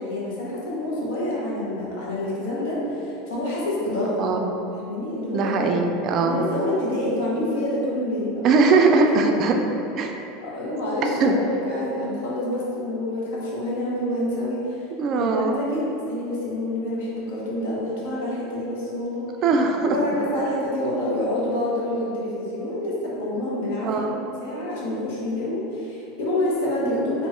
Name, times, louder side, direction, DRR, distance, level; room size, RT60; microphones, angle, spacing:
voice 1, 0.0-4.2 4.7-5.7 6.2-8.7 9.0-9.6 10.4-14.6 15.1-19.3 19.9-24.2 24.4-27.3, left 1 dB, 80° left, -5 dB, 0.9 m, -27 dB
voice 2, 4.2-4.5 5.3-6.4 8.4-9.5 10.0-10.1 11.0-11.3 15.0-15.6 19.4-20.0 23.8-24.1 26.8-27.0, right 4 dB, 35° right, 3 dB, 0.3 m, -20 dB
3.0 x 2.3 x 4.2 m, 2.8 s
supercardioid pair, 145°, 0 cm